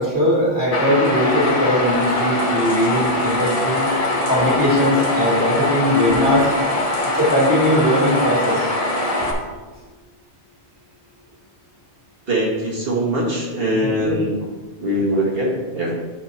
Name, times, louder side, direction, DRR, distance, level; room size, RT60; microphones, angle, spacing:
voice 1, 0.0-3.9 4.3-6.5 7.1-8.7 13.8-14.2, left 1 dB, 15° left, -7 dB, 2.2 m, -19 dB
sound 1, 0.7-9.3, left 1 dB, 35° left, 1.0 m, -22 dB
voice 2, 12.3-14.3 14.8-15.9, equal, 60° right, -4 dB, 1.5 m, -22 dB
7.1 x 4.6 x 4.2 m, 1.3 s
omnidirectional pair, 1.1 m